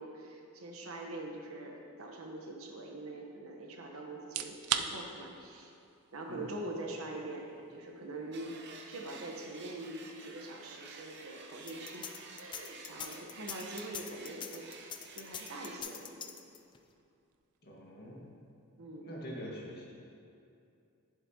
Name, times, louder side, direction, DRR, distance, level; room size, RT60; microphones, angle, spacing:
voice 1, 0.0-5.7 6.1-12.1 12.3-14.7 15.1-16.4 18.8-19.1, right 2 dB, 70° right, 1 dB, 1.0 m, -44 dB
sound 1, 4.2-19.0, right 9 dB, 90° right, 0.4 m, -46 dB
sound 2, 8.3-15.8, right 4 dB, 50° right, 0.7 m, -51 dB
sound 3, 11.6-16.8, left 8 dB, 20° left, 0.3 m, -43 dB
voice 2, 17.6-18.2 19.0-19.9, equal, 45° left, -4 dB, 1.6 m, -44 dB
11.0 x 7.3 x 2.8 m, 2.5 s
head